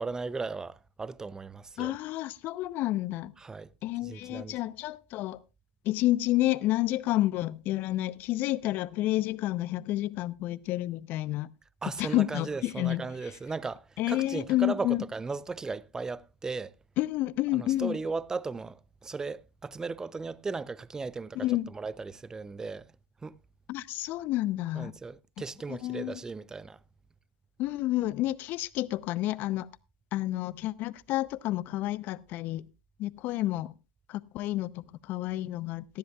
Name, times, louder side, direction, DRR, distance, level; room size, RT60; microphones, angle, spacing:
voice 1, 0.0-2.0 3.4-3.7 4.0-4.6 11.8-16.7 17.5-22.9 23.2-23.4 24.7-26.8, right 4 dB, 15° right, 0.6 m, -36 dB
voice 2, 1.8-3.3 3.8-5.4 5.8-11.5 12.0-13.0 14.0-15.0 17.0-18.0 21.3-21.7 23.7-24.9 25.7-26.2 27.6-29.7 30.1-32.6 33.0-33.7 34.1-36.0, left 16 dB, 45° left, 0.7 m, -30 dB
18.5 x 13.0 x 2.4 m
hypercardioid pair, 100°, 4 cm